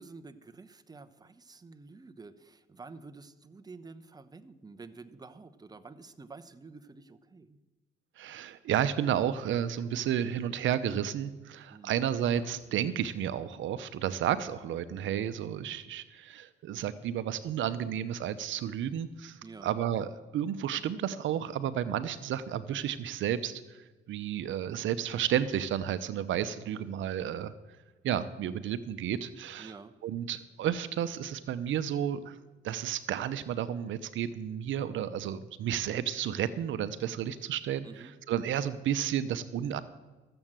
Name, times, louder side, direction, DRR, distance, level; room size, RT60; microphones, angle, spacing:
voice 1, 0.0-7.6 11.7-11.9 19.4-19.7 29.6-30.0 37.8-38.1, right 3 dB, 20° right, 9 dB, 0.9 m, -49 dB
voice 2, 8.2-27.5 28.0-29.8 30.0-32.4 32.6-39.8, right 10 dB, 75° right, 13 dB, 0.7 m, -32 dB
sound 1, 12.3-13.1 14.2-14.3 14.6-16.0 16.8-17.2, left 4 dB, 80° left, 4.0 m, -60 dB
14.0 x 7.8 x 7.4 m, 1.2 s
cardioid pair, 90°, 20 cm